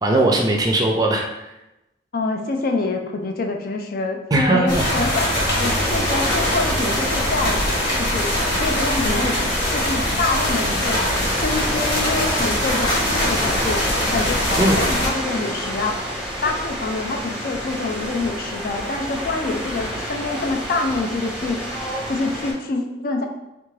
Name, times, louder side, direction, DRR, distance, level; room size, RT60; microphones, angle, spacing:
voice 1, 0.0-1.2 4.3-5.1 14.6-14.8, right 2 dB, 20° right, 1 dB, 0.4 m, -19 dB
voice 2, 2.1-7.6 8.0-8.3 8.6-9.4 9.7-11.0 11.4-13.8 14.1-16.0 16.4-21.6 22.1-23.3, left 3 dB, 50° left, 3 dB, 0.4 m, -26 dB
sound 1, 4.7-15.1, left 1 dB, 70° left, 1.2 m, -22 dB
sound 2, 5.6-22.5, equal, 5° right, 0.8 m, -29 dB
3.4 x 2.4 x 3.1 m, 0.93 s
head